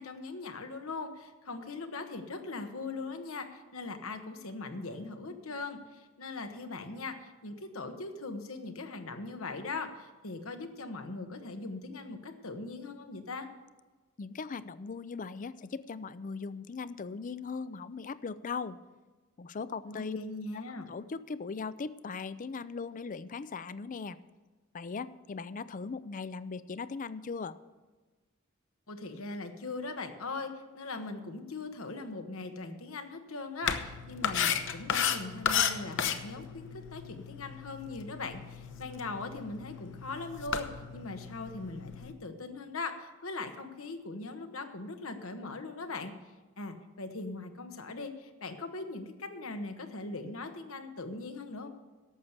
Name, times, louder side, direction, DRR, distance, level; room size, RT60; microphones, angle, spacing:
voice 1, 0.0-13.5 19.9-20.9 28.9-40.7 40.9-46.1 46.6-51.7, left 3 dB, 90° left, 7 dB, 1.3 m, -40 dB
voice 2, 14.2-18.8 19.4-20.2 20.5-20.6 20.9-24.2 24.7-27.6, left 4 dB, 40° left, 15 dB, 0.5 m, -39 dB
sound 1, 33.6-42.1, left 8 dB, 65° left, 0.9 m, -34 dB
12.0 x 7.3 x 8.0 m, 1.3 s
head